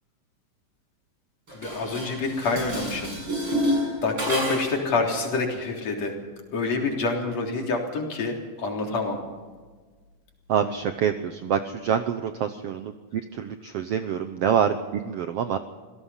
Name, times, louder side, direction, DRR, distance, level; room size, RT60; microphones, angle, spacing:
voice 1, 1.5-3.2 4.0-6.1 6.5-9.2, left 3 dB, 50° left, 1 dB, 4.6 m, -27 dB
Dishes pots and pans, 1.5-4.9, equal, 35° right, 7.8 m, -29 dB
voice 2, 10.5-15.6, right 8 dB, 75° right, 9 dB, 1.4 m, -26 dB
26.5 x 17.0 x 5.7 m, 1.4 s
omnidirectional pair, 3.9 m